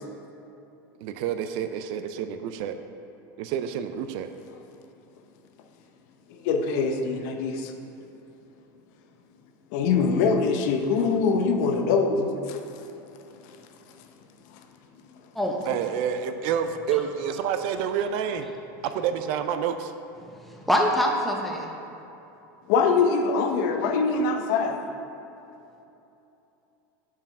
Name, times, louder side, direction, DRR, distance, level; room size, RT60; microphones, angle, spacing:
voice 1, 1.0-2.8 3.4-4.3 15.7-18.5 18.8-19.9, right 8 dB, 50° right, 9 dB, 0.4 m, -28 dB
voice 2, 6.3-7.7 9.7-12.9 22.7-24.8, left 4 dB, 60° left, 5 dB, 0.6 m, -23 dB
voice 3, 20.2-21.7, equal, ahead, -1 dB, 0.6 m, -25 dB
5.7 x 4.7 x 5.2 m, 2.9 s
supercardioid pair, 150°, 10 cm